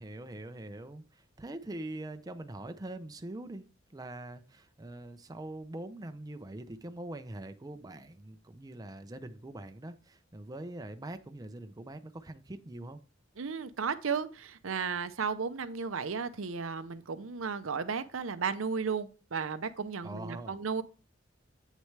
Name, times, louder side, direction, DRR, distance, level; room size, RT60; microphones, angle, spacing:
voice 1, 0.0-3.7 3.9-13.0 20.0-20.6, right 1 dB, 20° right, 8 dB, 0.5 m, -43 dB
voice 2, 13.4-20.8, right 5 dB, 90° right, 11 dB, 0.7 m, -34 dB
8.4 x 6.4 x 3.3 m, 0.35 s
head